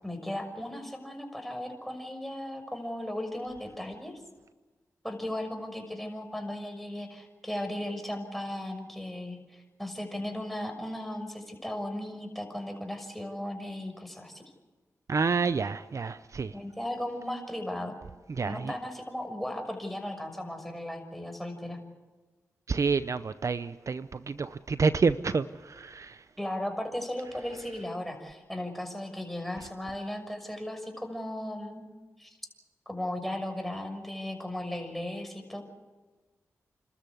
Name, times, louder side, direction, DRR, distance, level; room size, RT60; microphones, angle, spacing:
voice 1, 0.0-4.1 5.0-14.4 16.5-18.0 18.4-21.8 26.4-31.9 32.2-32.3 32.9-35.6, left 1 dB, ahead, 4 dB, 6.1 m, -36 dB
voice 2, 15.1-16.6 18.3-18.7 22.7-26.3, right 4 dB, 60° right, 14 dB, 0.6 m, -29 dB
29.5 x 13.5 x 8.4 m, 1.3 s
cardioid pair, 40°, 6 cm